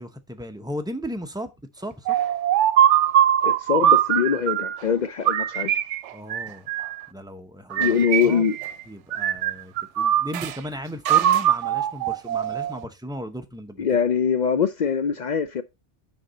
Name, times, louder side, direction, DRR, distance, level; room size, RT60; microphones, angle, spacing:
voice 1, 0.0-2.2 6.1-6.7 7.1-8.4 8.9-13.8, equal, 5° right, 0.6 m, -36 dB
sound 1, 2.1-4.8 5.3-7.1 7.7-8.8 9.1-10.6 11.0-12.8, right 10 dB, 85° right, 0.9 m, -22 dB
voice 2, 3.4-5.7 7.8-8.6 13.8-15.6, left 7 dB, 60° left, 0.5 m, -23 dB
6.5 x 5.4 x 4.1 m
omnidirectional pair, 1.2 m